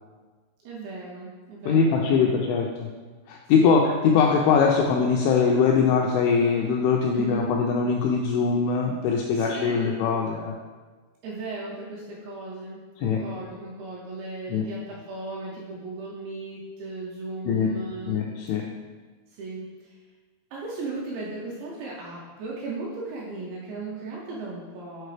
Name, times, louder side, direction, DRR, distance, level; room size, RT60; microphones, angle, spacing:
voice 1, 0.6-2.4 3.6-3.8 7.1-7.5 9.3-10.0 11.2-18.2 19.3-20.0 20.5-25.1, right 3 dB, 80° right, -5 dB, 2.7 m, -36 dB
voice 2, 1.7-2.9 3.3-10.5 13.0-13.2 14.5-14.6 17.5-17.7 18.1-18.6, left 5 dB, 85° left, 0 dB, 2.7 m, -22 dB
7.9 x 4.4 x 3.3 m, 1.3 s
omnidirectional pair, 5.9 m